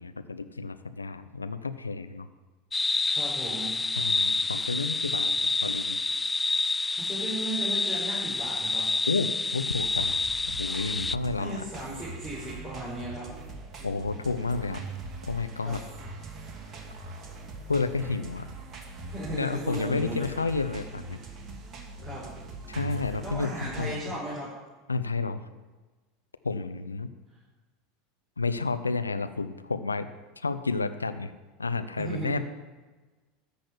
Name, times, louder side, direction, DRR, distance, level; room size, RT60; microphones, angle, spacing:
voice 1, 0.0-2.3 4.0-5.4 5.6-6.0 9.1-10.1 10.5-11.6 13.8-14.8 15.2-15.8 17.7-18.5 19.3-21.2 22.7-24.0 24.9-25.4 26.4-27.1 28.4-30.1 30.4-31.3 31.6-32.4, left 4 dB, 90° left, 11 dB, 0.6 m, -30 dB
sound 1, 2.7-11.2, left 3 dB, 15° left, 0.3 m, -28 dB
voice 2, 3.1-3.7 7.0-8.8 11.4-13.3 15.6-15.8 19.1-20.3 22.0-22.3 23.2-24.5 32.0-32.4, right 1 dB, 5° right, -10 dB, 5.6 m, -36 dB
sound 2, 9.8-23.9, right 3 dB, 35° right, 2.6 m, -42 dB
13.5 x 6.3 x 9.8 m, 1.3 s
figure-of-eight pair, 80°, 0 cm